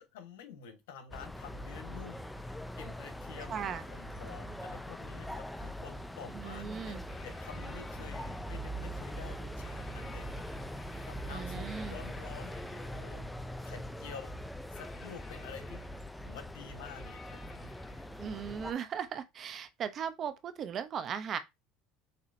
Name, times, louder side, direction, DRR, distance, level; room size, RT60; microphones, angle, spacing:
voice 1, 0.0-13.2 13.6-15.8 16.3-18.1, left 7 dB, 90° left, 1.2 m, -49 dB
sound 1, 1.1-18.7, equal, 5° left, 0.4 m, -42 dB
voice 2, 3.5-3.8 6.3-7.0 11.3-12.0 18.2-21.4, right 8 dB, 45° right, 0.7 m, -37 dB
sound 2, 7.1-8.7 9.6-13.3 14.7-16.2 16.8-18.3 20.1-20.2, left 4 dB, 25° left, 1.7 m, -55 dB
6.6 x 2.8 x 2.6 m
supercardioid pair, 105°, 0 cm